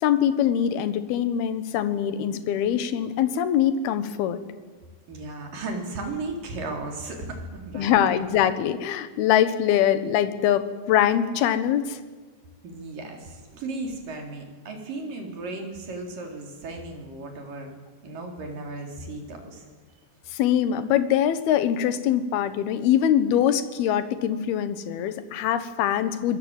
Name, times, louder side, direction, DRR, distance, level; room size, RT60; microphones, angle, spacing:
voice 1, 0.0-4.4 7.7-12.0 20.3-26.4, left 10 dB, 70° left, 12 dB, 2.8 m, -23 dB
voice 2, 5.1-8.0 12.6-17.7 18.0-19.6, right 2 dB, 45° right, 2 dB, 5.2 m, -35 dB
25.0 x 21.0 x 9.0 m, 1.3 s
omnidirectional pair, 5.5 m